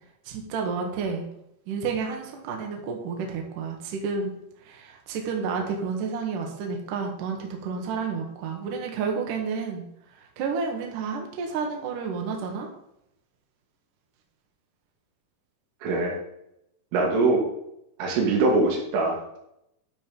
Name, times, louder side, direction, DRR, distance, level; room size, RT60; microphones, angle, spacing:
voice 1, 0.3-1.2 1.7-4.3 4.7-9.8 10.4-12.7, right 5 dB, 60° right, 2 dB, 2.3 m, -30 dB
voice 2, 15.8-16.1 16.9-17.4 18.0-19.4, right 3 dB, 85° right, 0 dB, 4.6 m, -23 dB
12.0 x 5.4 x 5.3 m, 0.80 s
omnidirectional pair, 5.6 m